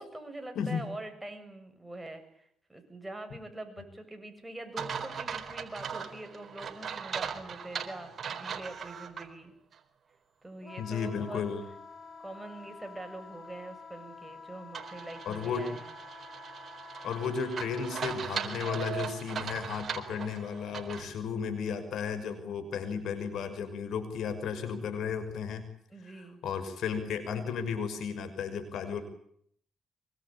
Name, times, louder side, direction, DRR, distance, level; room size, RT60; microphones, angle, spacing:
voice 1, 0.0-9.5 10.4-11.4 12.2-15.9 25.9-26.4, right 2 dB, 10° right, 6 dB, 7.0 m, -44 dB
voice 2, 0.6-0.9 10.8-11.6 15.3-15.7 17.0-25.7 26.2-29.0, left 6 dB, 70° left, 11 dB, 6.0 m, -34 dB
sound 1, 4.8-9.3 9.7-9.8 14.7-21.1, right 7 dB, 50° right, 4.1 m, -39 dB
Wind instrument woodwind instrument, 10.6-18.5, left 5 dB, 45° left, 6.1 m, -49 dB
24.5 x 24.0 x 8.9 m, 0.68 s
cardioid pair, 90°, 0 cm